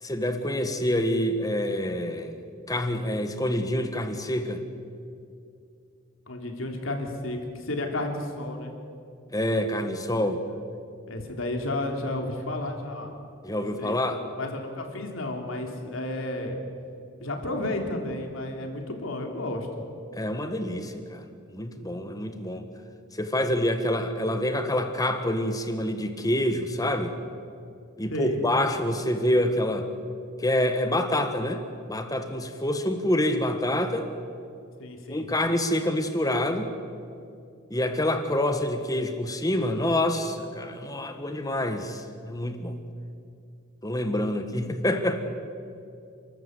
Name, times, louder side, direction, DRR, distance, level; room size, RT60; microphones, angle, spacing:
voice 1, 0.0-2.3 2.7-4.6 9.3-10.4 13.4-14.2 20.1-22.7 23.1-27.1 28.0-29.9 30.4-31.6 31.9-34.1 35.1-36.7 37.7-42.7 43.8-45.2, left 1 dB, 20° left, 7 dB, 1.5 m, -27 dB
voice 2, 6.3-8.7 11.1-13.1 13.8-14.0 14.4-16.6 17.2-19.7 28.1-28.4 34.8-35.3, left 1 dB, 80° left, 3 dB, 3.3 m, -32 dB
29.0 x 14.0 x 8.2 m, 2.5 s
head